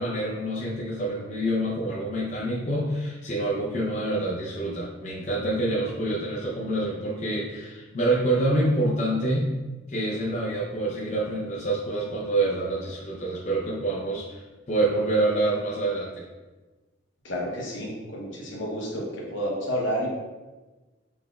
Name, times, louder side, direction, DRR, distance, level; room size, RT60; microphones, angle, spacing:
voice 1, 0.0-9.5 9.9-14.4 14.7-16.3, right 2 dB, 35° left, -5 dB, 0.5 m, -27 dB
voice 2, 17.2-20.1, equal, 75° left, -2 dB, 0.9 m, -30 dB
4.1 x 3.4 x 2.3 m, 1.2 s
head